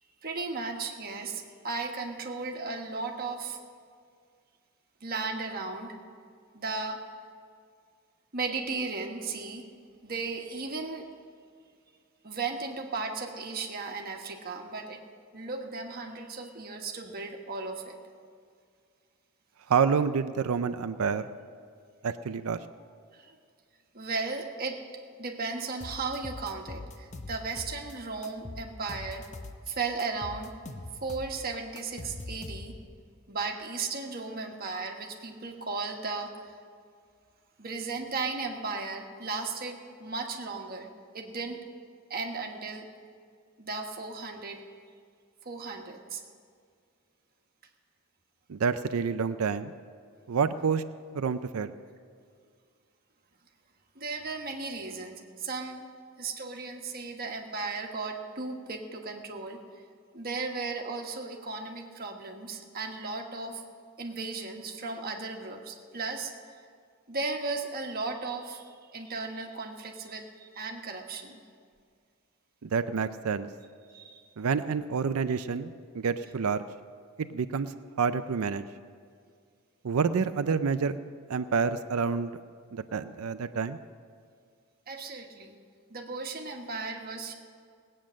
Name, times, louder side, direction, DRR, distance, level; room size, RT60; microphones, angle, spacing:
voice 1, 0.2-3.6 5.0-6.0 6.5-7.0 8.3-9.7 10.0-11.1 12.2-15.0 15.3-18.0 23.1-23.4 23.9-24.8 25.2-29.3 29.7-30.5 31.0-32.7 33.3-36.5 37.6-40.9 41.1-41.6 42.1-42.9 43.6-44.6 45.4-46.2 53.9-55.8 56.2-59.6 60.1-63.6 64.0-66.3 67.1-71.4 73.9-74.2 84.9-85.6 85.9-87.3, right 4 dB, 45° right, 2 dB, 1.4 m, -35 dB
voice 2, 19.7-21.2 22.0-22.6 48.5-49.7 50.3-50.8 51.1-51.7 72.6-73.5 74.4-76.6 77.2-77.7 78.0-78.7 79.8-81.0 81.3-82.3 82.7-83.8, right 5 dB, 85° right, 11 dB, 0.5 m, -28 dB
sound 1, 25.8-27.9 28.2-29.7 30.0-32.9, left 2 dB, 35° left, 0.9 m, -42 dB
18.5 x 8.9 x 6.3 m, 2.1 s
head